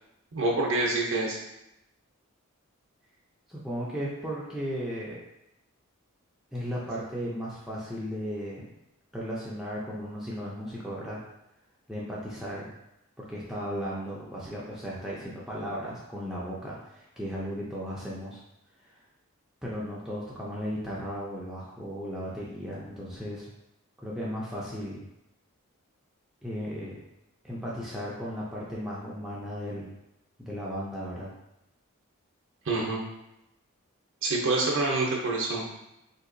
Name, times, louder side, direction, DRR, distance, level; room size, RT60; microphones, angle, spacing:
voice 1, 0.3-1.4 32.7-33.0 34.2-35.6, right 2 dB, 60° right, -2 dB, 0.6 m, -26 dB
voice 2, 3.5-5.2 6.5-8.7 9.1-11.2 11.9-12.6 13.2-18.4 19.6-23.5 24.0-25.1 26.4-27.0 27.4-29.9 30.4-31.3, equal, ahead, -7 dB, 0.4 m, -35 dB
3.8 x 2.8 x 2.5 m, 0.86 s
head